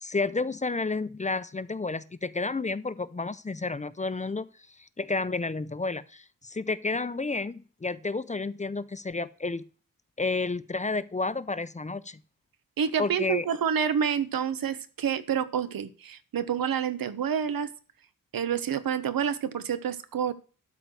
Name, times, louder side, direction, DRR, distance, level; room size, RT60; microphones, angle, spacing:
voice 1, 0.0-9.7 10.2-12.2 13.0-13.5, left 3 dB, 20° left, 15 dB, 0.6 m, -31 dB
voice 2, 12.8-17.7 18.3-20.3, right 8 dB, 90° right, 13 dB, 1.2 m, -28 dB
12.5 x 4.6 x 7.8 m, 0.37 s
wide cardioid pair, 140°, 34 cm